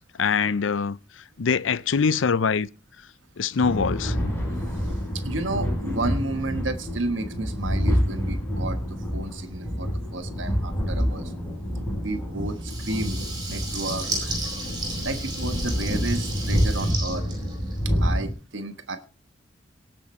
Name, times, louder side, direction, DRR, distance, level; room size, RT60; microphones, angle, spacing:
voice 1, 0.2-1.0 1.4-2.7 3.4-4.2, left 5 dB, 90° left, 0.6 m, -23 dB
sound 1, 3.6-18.3, equal, 10° left, 5.9 m, -27 dB
voice 2, 5.2-11.3 12.0-13.2 13.5-14.3 15.0-17.3 18.0-19.0, right 2 dB, 85° right, 1.3 m, -32 dB
Water tap faucet / Liquid, 12.6-18.1, right 2 dB, 25° right, 5.9 m, -34 dB
18.5 x 7.7 x 4.3 m
head